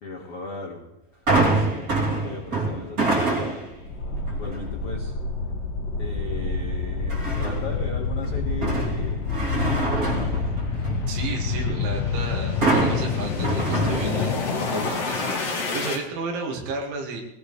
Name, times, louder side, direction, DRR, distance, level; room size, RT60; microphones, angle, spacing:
voice 1, 0.0-0.9 1.4-1.9 2.2-3.6 4.3-5.1 6.0-10.5, left 4 dB, 70° left, 0 dB, 1.3 m, -36 dB
sound 1, 1.3-3.8 4.3-4.7 7.1-7.8 8.2-11.1 12.6-14.6 14.9-15.0, right 2 dB, 25° right, 2.5 m, -25 dB
sound 2, 3.8-16.0, left 4 dB, 40° left, 2.7 m, -27 dB
voice 2, 11.1-17.2, right 3 dB, 90° right, 0 dB, 4.4 m, -33 dB
20.0 x 17.0 x 3.3 m, 0.91 s
omnidirectional pair, 5.2 m